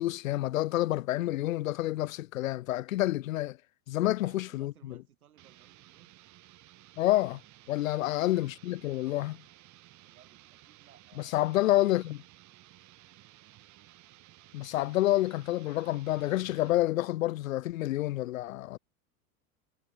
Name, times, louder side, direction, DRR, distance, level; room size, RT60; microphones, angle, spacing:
voice 1, 0.0-3.6 3.9-4.7 7.0-7.4 7.7-9.4 11.3-12.2 14.5-18.8, left 15 dB, 65° left, 0.7 m, -28 dB
voice 2, 4.2-6.1 8.0-8.2 10.0-12.0, right 10 dB, 70° right, 6.0 m, -61 dB
sound 1, 5.4-16.8, right 16 dB, 40° right, 6.1 m, -56 dB
figure-of-eight pair, 85°, 45 cm